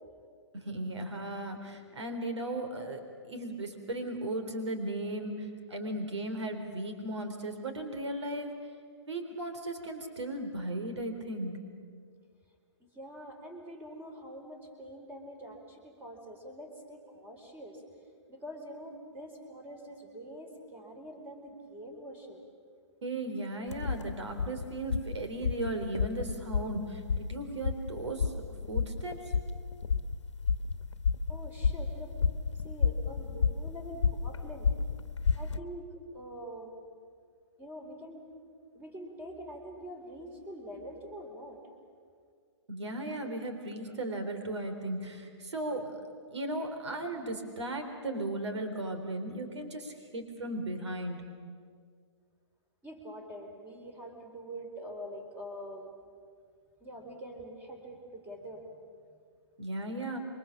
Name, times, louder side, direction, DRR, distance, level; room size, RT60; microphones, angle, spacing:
voice 1, 0.5-3.0 3.3-8.5 9.0-11.6 23.0-28.3 28.7-29.3 42.7-46.0 46.3-51.2 59.6-60.2, right 1 dB, 70° right, 6 dB, 4.0 m, -36 dB
voice 2, 12.8-17.8 18.3-22.4 31.3-32.1 32.6-34.7 35.3-36.7 37.6-38.2 38.7-41.6 52.8-55.9 56.8-58.7, equal, 15° right, 3 dB, 4.2 m, -45 dB
sound 1, 23.7-35.6, left 5 dB, 75° left, 1.2 m, -32 dB
27.0 x 23.5 x 7.4 m, 2.1 s
hypercardioid pair, 135°, 15 cm